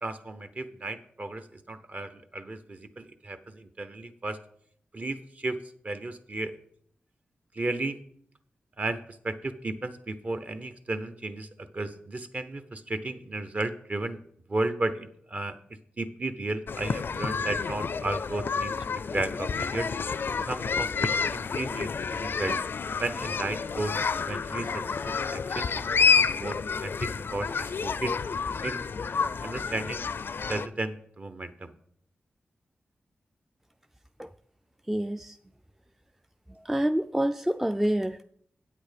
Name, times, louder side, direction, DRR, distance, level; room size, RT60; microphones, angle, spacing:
voice 1, 0.0-4.4 4.9-5.6 5.8-6.6 7.5-8.0 8.8-14.2 14.5-15.6 16.0-18.7 19.1-19.9 20.5-22.6 23.0-26.6 26.8-28.1 28.6-28.8 29.4-30.1 30.5-31.7, right 2 dB, 40° right, 11 dB, 0.8 m, -34 dB
sound 1, 16.7-30.7, left 5 dB, 60° left, 0.4 m, -29 dB
voice 2, 34.9-35.4 36.5-38.2, right 1 dB, 5° right, 9 dB, 0.4 m, -27 dB
8.7 x 8.3 x 5.1 m, 0.65 s
wide cardioid pair, 85°, 4 cm